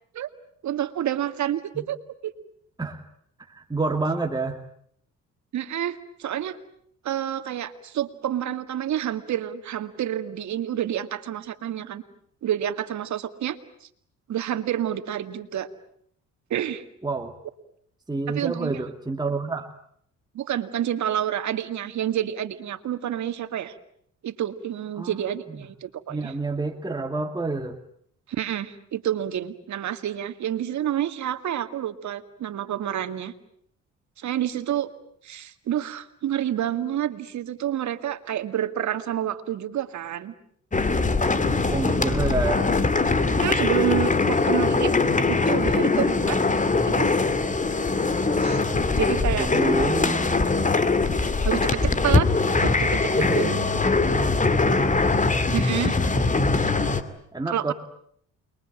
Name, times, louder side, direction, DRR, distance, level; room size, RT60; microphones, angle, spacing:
voice 1, 0.6-2.0 2.2-2.3 5.5-6.6 7.0-12.0 12.4-13.9 14.3-15.7 16.5-16.8 18.3-18.7 20.3-23.7 24.2-26.3 28.3-33.3 34.2-34.9 35.2-40.3 43.3-44.9 45.3-46.4 46.9-47.2 48.4-48.6 49.0-49.7 51.4-52.3 52.6-53.8 55.5-56.0 57.5-57.7, right 11 dB, 70° right, 9 dB, 2.2 m, -29 dB
voice 2, 3.5-4.6 17.0-17.4 18.1-19.7 25.0-25.2 25.5-25.6 26.1-27.8 41.7-42.7 49.4-50.5 53.2-53.5 57.3-57.7, right 3 dB, 15° right, 3 dB, 2.3 m, -28 dB
sound 1, 40.7-57.0, left 3 dB, 25° left, 2.4 m, -22 dB
29.0 x 22.5 x 9.0 m, 0.67 s
cardioid pair, 90°, 30 cm